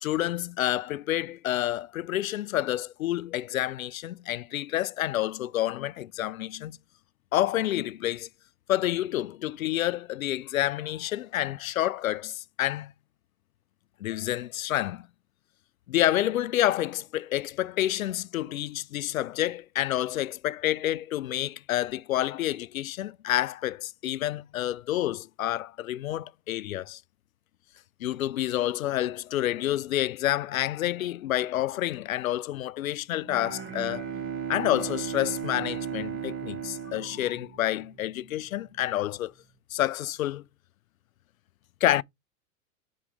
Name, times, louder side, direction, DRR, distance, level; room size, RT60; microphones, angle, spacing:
voice 1, 0.0-6.8 7.3-8.3 8.7-12.9 14.0-15.1 15.9-27.0 28.0-34.1 34.5-39.3 39.7-40.4 41.8-42.0, left 13 dB, 75° left, 0.5 m, -28 dB
Bowed string instrument, 33.2-38.1, right 8 dB, 30° right, 1.6 m, -35 dB
5.9 x 4.6 x 4.7 m
hypercardioid pair, 100°, 41 cm